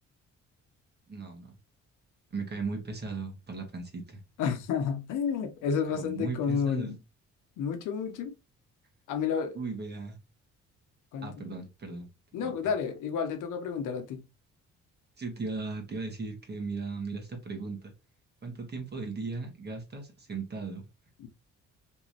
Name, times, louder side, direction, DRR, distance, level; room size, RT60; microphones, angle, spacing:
voice 1, 1.1-1.5 2.3-4.2 5.9-6.9 9.5-10.2 11.2-12.1 12.4-12.5 15.2-17.9 18.4-20.9, right 4 dB, 35° right, 1.6 m, -37 dB
voice 2, 4.4-7.0 7.6-8.3 9.1-9.6 11.1-11.6 12.3-14.2, left 6 dB, 85° left, 0.9 m, -31 dB
3.5 x 3.0 x 2.8 m
cardioid pair, 90°, 30 cm